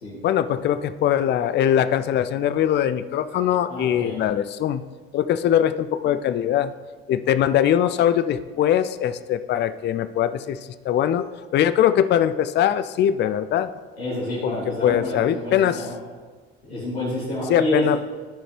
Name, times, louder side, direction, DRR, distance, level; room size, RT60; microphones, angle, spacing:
voice 1, 0.2-4.8 5.1-6.7 7.1-10.6 10.8-13.7 14.4-14.6 14.8-15.8 17.5-18.0, left 10 dB, 35° left, 12 dB, 0.4 m, -21 dB
voice 2, 3.7-4.2 14.0-15.9 16.6-17.9, left 1 dB, 90° left, -10 dB, 2.4 m, -28 dB
13.5 x 5.1 x 3.3 m, 1.5 s
hypercardioid pair, 55°, 30 cm